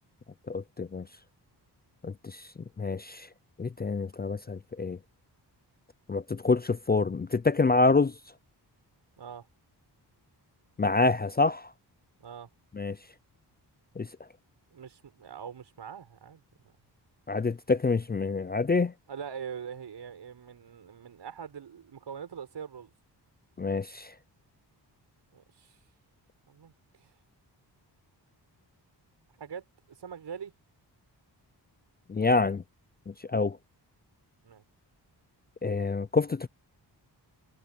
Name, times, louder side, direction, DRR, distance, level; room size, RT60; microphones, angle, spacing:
voice 1, 0.5-1.0 2.0-2.4 2.8-3.3 3.6-5.0 6.1-8.1 10.8-11.7 12.8-13.0 14.0-14.1 17.3-18.9 23.6-24.1 32.1-32.6 33.3-33.6 35.6-36.5, left 3 dB, 25° left, 0.5 m, -26 dB
voice 2, 12.2-12.5 14.7-16.8 19.1-22.9 25.3-25.8 26.5-27.1 29.4-30.5 34.4-34.6, right 7 dB, 75° right, 7.3 m, -43 dB
wide cardioid pair, 95°, 42 cm